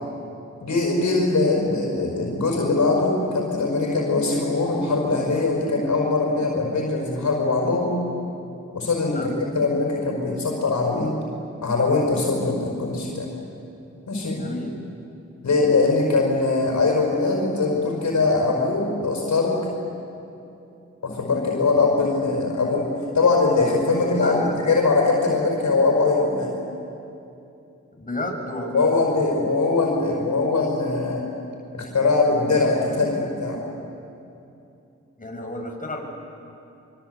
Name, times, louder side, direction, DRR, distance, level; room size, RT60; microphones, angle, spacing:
voice 1, 0.6-8.0 8.7-11.2 11.6-13.3 14.1-14.5 15.4-19.7 21.0-26.5 28.7-31.2 31.7-33.6, left 3 dB, 80° left, 0 dB, 5.3 m, -22 dB
voice 2, 14.3-14.7 24.2-24.6 28.0-28.9 35.2-36.0, left 1 dB, 30° left, 1 dB, 6.4 m, -31 dB
26.0 x 25.0 x 8.3 m, 2.7 s
cardioid pair, 45°, 29 cm